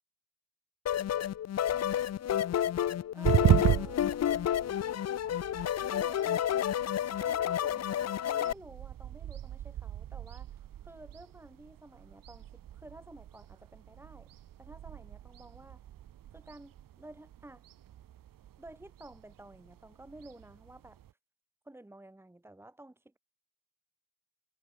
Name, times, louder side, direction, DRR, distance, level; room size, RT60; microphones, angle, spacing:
sound 1, 0.9-8.5, left 10 dB, 45° left, 0.9 m, -30 dB
voice 1, 3.1-4.1 5.9-6.5 7.1-14.3 14.6-15.8 16.3-17.6 18.6-21.0 21.6-23.2, right 1 dB, 5° right, 3.8 m, -51 dB
sound 2, 3.2-21.1, right 12 dB, 60° right, 2.2 m, -36 dB
cardioid pair, 160°, 37 cm